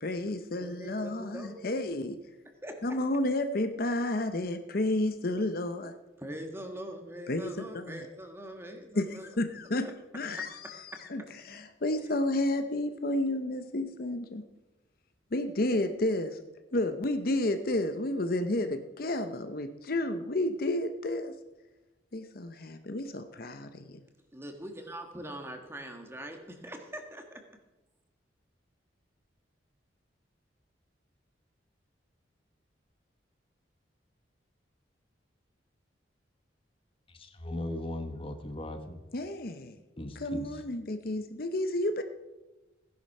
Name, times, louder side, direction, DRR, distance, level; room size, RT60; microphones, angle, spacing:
voice 1, 0.0-2.2 2.8-5.9 7.3-8.1 9.0-9.9 10.1-10.8 11.1-14.4 15.3-16.4 16.7-21.3 22.1-24.0 39.1-39.8 40.2-42.0, left 1 dB, 50° left, 8 dB, 0.7 m, -31 dB
voice 2, 0.6-1.7 2.6-2.8 5.2-5.4 6.2-9.3 9.8-9.9 12.1-12.2 24.3-27.4, right 1 dB, 15° right, 4 dB, 1.5 m, -42 dB
voice 3, 37.1-39.0 40.0-40.6, left 1 dB, 30° left, 7 dB, 1.0 m, -38 dB
16.0 x 10.5 x 5.4 m, 1.1 s
head